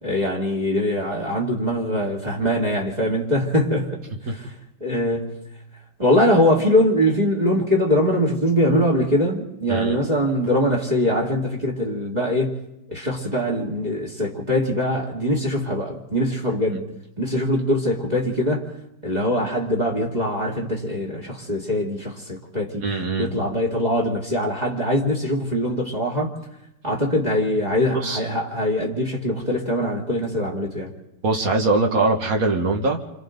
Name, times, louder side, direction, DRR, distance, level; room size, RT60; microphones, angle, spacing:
voice 1, 0.0-4.5 4.8-5.4 6.0-12.6 12.9-16.9 17.2-18.7 19.0-22.8 23.2-26.3 26.8-30.9, equal, 20° right, 2.6 m, -22 dB
voice 2, 22.8-23.3 28.0-28.2 31.2-33.1, right 3 dB, 45° right, 2.1 m, -22 dB
29.5 x 26.0 x 3.9 m
omnidirectional pair, 2.2 m